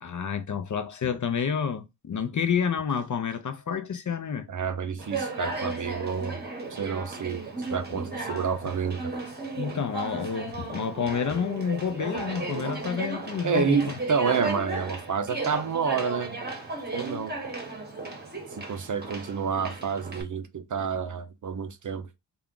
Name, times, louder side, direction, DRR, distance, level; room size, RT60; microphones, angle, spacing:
voice 1, 0.0-4.5 9.6-14.0, left 7 dB, 45° left, 0.5 m, -29 dB
voice 2, 4.5-6.4 6.7-9.1 13.4-16.4 16.9-17.4 18.5-22.1, right 6 dB, 45° right, 0.5 m, -29 dB
Conversation, 5.0-20.2, right 3 dB, 20° right, 0.9 m, -35 dB
3.4 x 2.4 x 3.7 m
wide cardioid pair, 110°, 44 cm